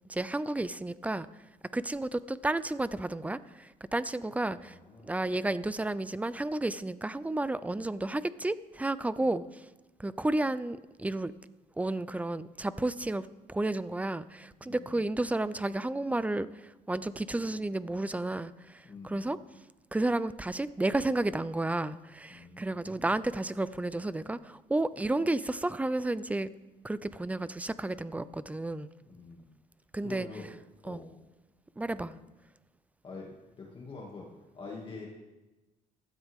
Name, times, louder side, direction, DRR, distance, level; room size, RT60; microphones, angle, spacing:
voice 1, 0.1-1.3 1.7-4.8 5.0-9.6 10.0-11.3 11.8-19.4 19.9-26.5 26.8-28.9 29.9-30.3 30.8-31.0 31.8-32.1, right 2 dB, 10° right, 16 dB, 0.5 m, -32 dB
voice 2, 4.5-5.1 9.2-9.3 14.6-15.0 18.8-19.3 22.3-23.1 29.1-29.5 30.0-30.5 30.8-31.1 32.0-32.2 33.0-33.3 33.6-34.3 34.5-35.1, left 4 dB, 30° left, -3 dB, 2.3 m, -46 dB
15.5 x 12.5 x 3.6 m, 1.1 s
cardioid pair, 110°, 17 cm